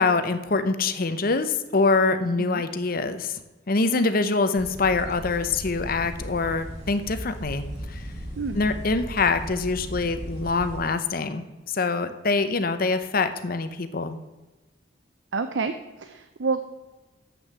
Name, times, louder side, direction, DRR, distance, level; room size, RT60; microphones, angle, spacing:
voice 1, 0.0-3.4 3.7-8.0 8.5-14.2, left 3 dB, 50° left, 10 dB, 0.7 m, -25 dB
sound 1, 4.6-10.8, equal, 40° right, 2.3 m, -37 dB
voice 2, 15.3-15.7 16.0-16.6, right 4 dB, 75° right, 8 dB, 0.6 m, -28 dB
7.8 x 6.4 x 7.5 m, 1.1 s
head